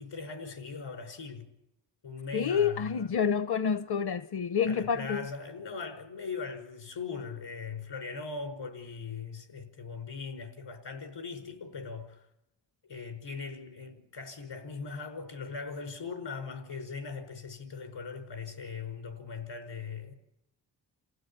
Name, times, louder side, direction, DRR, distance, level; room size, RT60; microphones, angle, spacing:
voice 1, 0.0-1.5 2.0-3.1 4.6-12.2 12.9-20.1, left 5 dB, 85° left, 5.5 m, -40 dB
voice 2, 2.3-5.3, left 7 dB, 65° left, 0.9 m, -28 dB
29.0 x 16.0 x 8.7 m
cardioid pair, 80°, 43 cm